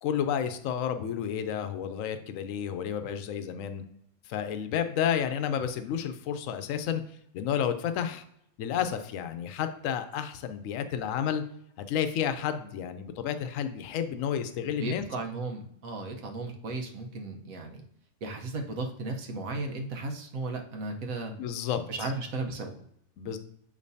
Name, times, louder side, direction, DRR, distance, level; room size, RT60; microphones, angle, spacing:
voice 1, 0.0-3.8 4.3-7.0 7.3-8.2 8.6-11.4 11.8-15.0 21.3-22.1 23.2-23.4, left 8 dB, 75° left, 9 dB, 1.0 m, -31 dB
voice 2, 14.6-17.8 18.2-21.3 21.9-22.7, right 3 dB, 75° right, 3 dB, 1.4 m, -35 dB
7.1 x 5.2 x 2.7 m, 0.73 s
omnidirectional pair, 1.5 m